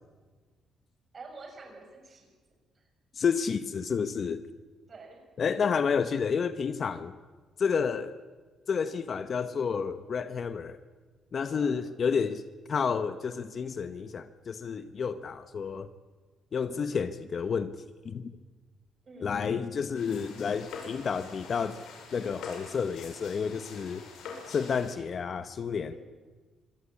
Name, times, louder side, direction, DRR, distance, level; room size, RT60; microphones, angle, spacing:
voice 1, 1.1-2.3 2.7-2.8 4.9-5.2 11.5-11.7 19.0-19.4 25.9-26.0, right 3 dB, 40° right, 3 dB, 6.6 m, -48 dB
voice 2, 3.1-4.4 5.4-7.1 7.6-8.1 8.7-10.8 11.3-12.4 12.7-15.9 16.5-17.8 18.0-18.3 19.2-21.8 22.1-24.0 24.5-25.9, left 6 dB, 50° left, 11 dB, 1.0 m, -30 dB
sound 1, 20.0-25.0, left 5 dB, 80° left, 5.7 m, -45 dB
25.0 x 17.0 x 8.6 m, 1.4 s
cardioid pair, 90°, 0 cm